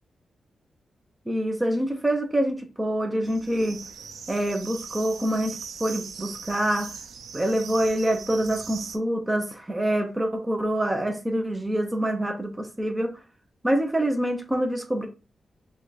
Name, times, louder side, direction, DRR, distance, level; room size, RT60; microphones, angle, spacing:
voice 1, 1.3-3.8 4.3-6.9 7.3-13.1 13.6-15.1, right 1 dB, 10° right, 0.7 m, -26 dB
sound 1, 3.2-9.0, right 6 dB, 85° right, 0.6 m, -40 dB
4.9 x 2.4 x 4.0 m
wide cardioid pair, 160°, 0 cm